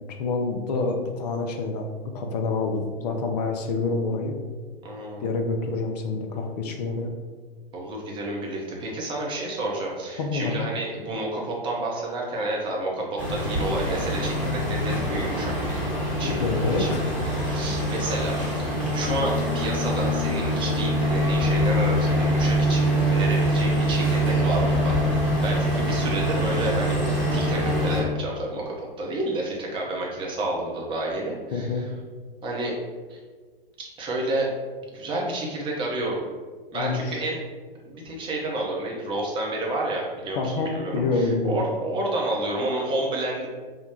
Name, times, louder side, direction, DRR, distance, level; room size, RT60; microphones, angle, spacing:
voice 1, 0.1-4.4 5.2-7.1 10.2-10.7 16.2-17.0 31.5-31.9 36.7-37.2 40.3-41.6, left 3 dB, 45° left, 3 dB, 0.6 m, -27 dB
voice 2, 4.8-5.2 7.7-15.8 16.2-16.4 16.8-16.9 17.4-31.9 32.4-32.7 33.1-33.2 34.0-34.5 34.9-36.2 36.7-37.4 37.9-43.5, right 2 dB, 15° right, -3 dB, 0.8 m, -30 dB
sound 1, 13.2-28.0, equal, 5° left, 1.1 m, -24 dB
3.6 x 2.3 x 4.3 m, 1.5 s
figure-of-eight pair, 105°, 29 cm